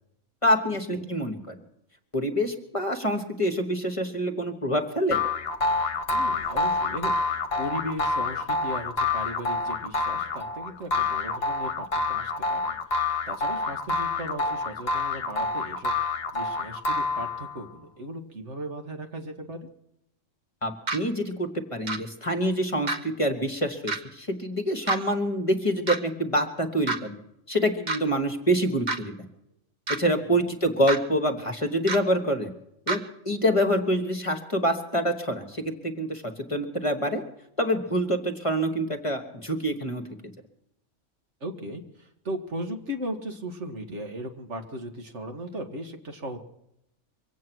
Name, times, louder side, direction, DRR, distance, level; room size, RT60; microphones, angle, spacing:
voice 1, 0.4-1.6 2.1-5.2 20.6-27.2 27.5-29.1 30.0-32.5 32.9-37.2 37.6-40.3, equal, 25° left, 5 dB, 1.4 m, -26 dB
sound 1, 5.1-17.6, left 3 dB, 55° left, 1.3 m, -27 dB
voice 2, 6.1-19.7 30.4-30.5 41.4-46.4, equal, 65° right, 4 dB, 2.0 m, -37 dB
sound 2, 20.9-21.0 21.9-22.0 22.9-23.0 23.9-24.0 24.9-25.0 25.9-26.0 26.9-27.0 27.9-28.0 28.9-29.0 29.9-30.0 30.9-31.0 31.9-32.0 32.9-33.0, right 2 dB, 35° right, 1.2 m, -27 dB
24.0 x 8.6 x 6.1 m, 0.80 s
omnidirectional pair, 1.3 m